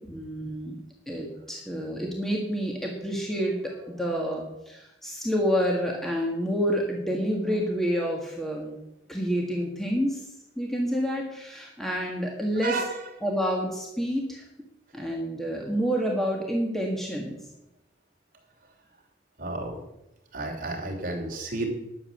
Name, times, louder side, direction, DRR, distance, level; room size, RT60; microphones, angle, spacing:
voice 1, 0.1-0.8 1.1-8.8 9.1-10.2 10.6-12.8 13.2-14.4 14.9-17.4, equal, ahead, -1 dB, 1.7 m, -28 dB
voice 2, 12.6-13.0 19.4-19.8 20.3-21.7, right 2 dB, 45° right, -1 dB, 3.0 m, -31 dB
11.0 x 7.4 x 8.2 m, 0.89 s
head